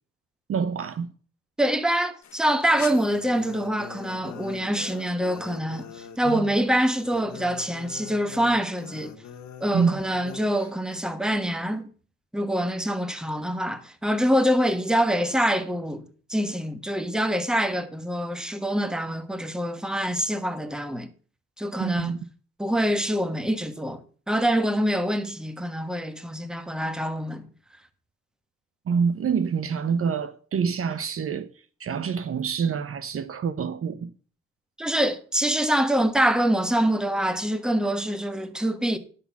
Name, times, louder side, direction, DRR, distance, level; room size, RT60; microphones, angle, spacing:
voice 1, 0.5-1.1 6.2-6.5 9.7-10.0 21.8-22.2 28.9-31.5 31.8-34.1, right 6 dB, 45° right, 0.8 m, -26 dB
voice 2, 1.6-9.1 9.6-11.9 12.3-16.0 16.3-21.1 21.6-22.1 22.6-24.0 24.3-27.5 34.8-39.0, equal, ahead, 1.1 m, -25 dB
sound 1, 2.2-11.0, left 9 dB, 65° left, 1.4 m, -43 dB
10.5 x 4.3 x 7.0 m
cardioid pair, 90°, 30 cm